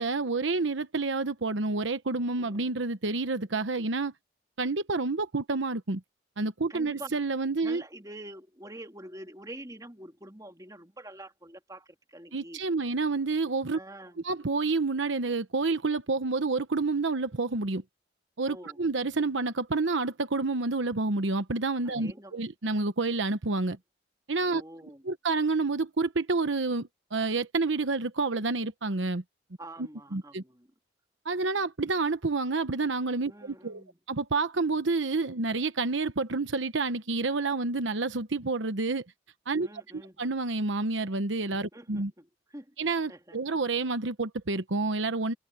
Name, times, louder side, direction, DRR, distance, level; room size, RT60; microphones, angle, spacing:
voice 1, 0.0-4.1 4.6-6.0 6.4-7.8 12.3-13.8 14.2-17.8 18.4-23.8 24.3-24.6 25.0-29.2 29.8-30.4 31.2-39.0 39.5-39.7 39.9-42.1 42.8-45.3, right 3 dB, 80° right, 1.0 m, -29 dB
voice 2, 2.4-2.7 6.7-7.2 7.6-12.6 13.7-14.2 18.5-18.8 21.8-22.3 24.4-25.0 29.6-30.7 33.3-34.0 39.6-40.2 41.7-42.7 43.1-43.4, right 1 dB, 20° right, 3.2 m, -46 dB
head